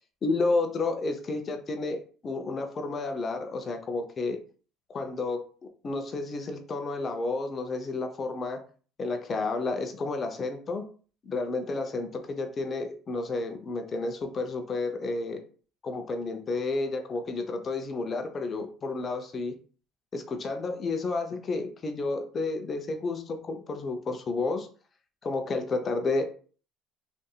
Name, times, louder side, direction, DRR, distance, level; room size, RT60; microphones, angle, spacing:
voice 1, 0.2-4.4 4.9-5.4 5.8-8.6 9.0-10.9 11.2-15.4 15.8-19.5 20.1-24.7 25.2-26.2, left 3 dB, 40° left, 5 dB, 0.5 m, -31 dB
2.7 x 2.5 x 2.3 m, 0.40 s
hypercardioid pair, 75°, 0 cm